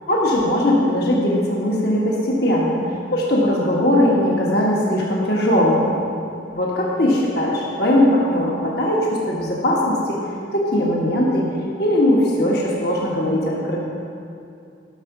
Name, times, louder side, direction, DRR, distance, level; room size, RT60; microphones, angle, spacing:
voice 1, 0.1-2.8 3.1-5.9 6.5-10.2 10.5-11.4 11.8-13.8, left 1 dB, 55° left, -3 dB, 1.5 m, -19 dB
12.0 x 6.5 x 6.0 m, 2.5 s
head